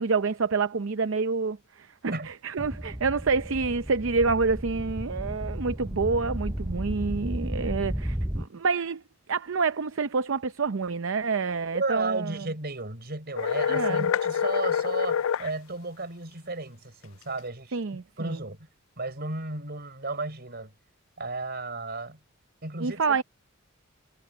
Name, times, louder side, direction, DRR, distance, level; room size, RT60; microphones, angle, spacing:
voice 1, 0.0-9.0 9.3-12.5 13.7-14.1 17.7-18.4 22.8-23.2, right 4 dB, 65° right, 0.6 m, -28 dB
sound 1, 2.6-8.5, equal, 5° right, 0.4 m, -33 dB
voice 2, 11.7-18.6 19.0-20.7 21.2-22.2 22.6-23.2, right 2 dB, 50° right, 5.1 m, -34 dB
sound 2, 13.4-15.5, left 7 dB, 70° left, 0.4 m, -26 dB
head